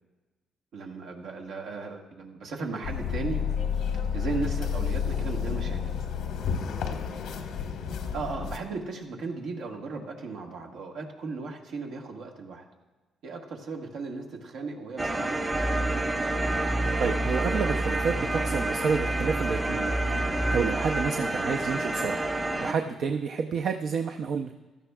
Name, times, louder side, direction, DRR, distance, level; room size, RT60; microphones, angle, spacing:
voice 1, 0.7-3.5 3.7-5.9 8.1-12.6 13.2-15.6, right 4 dB, 80° right, 1 dB, 1.5 m, -36 dB
sound 1, 2.8-8.6, left 7 dB, 85° left, 1.0 m, -30 dB
sound 2, 15.0-22.7, right 2 dB, 20° right, 1.0 m, -29 dB
sound 3, 15.5-21.1, right 1 dB, 5° left, 0.4 m, -31 dB
voice 2, 17.0-20.0 20.2-22.3 22.6-24.5, right 5 dB, 65° right, 4 dB, 0.5 m, -29 dB
15.5 x 12.5 x 2.3 m, 1.2 s
cardioid pair, 90°, 0 cm